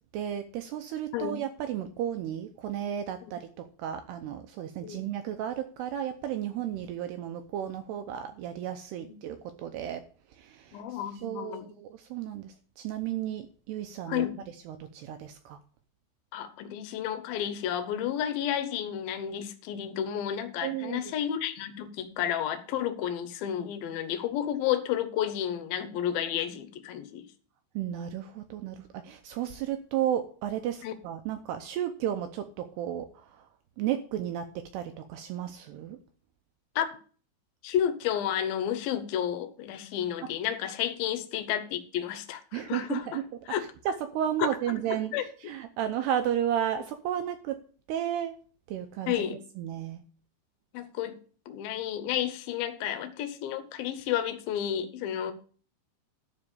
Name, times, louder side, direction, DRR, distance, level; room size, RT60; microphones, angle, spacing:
voice 1, 0.1-10.0 10.3-14.3 14.7-15.6 20.6-21.1 27.8-33.5 33.8-36.0 40.2-40.3 42.5-43.2 43.6-47.6 47.9-48.4 48.7-49.3 49.6-50.0, right 10 dB, 80° right, 2.4 m, -33 dB
voice 2, 10.7-11.7 14.1-14.4 16.3-27.2 30.8-30.9 36.8-36.9 37.6-43.2 43.5-43.6 44.4-44.8 45.1-45.3 49.1-49.4 50.7-51.2 51.5-55.3, left 10 dB, 75° left, 2.3 m, -31 dB
12.0 x 4.4 x 8.2 m
omnidirectional pair, 5.4 m